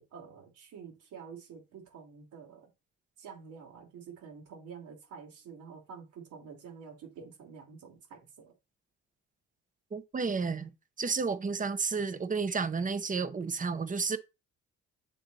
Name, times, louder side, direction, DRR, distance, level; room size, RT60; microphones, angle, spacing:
voice 1, 0.0-2.7 3.2-8.5, right 6 dB, 80° right, 2.9 m, -48 dB
voice 2, 9.9-10.7 11.0-14.2, right 5 dB, 25° right, 0.7 m, -31 dB
7.5 x 3.3 x 4.0 m
cardioid pair, 90°, 30 cm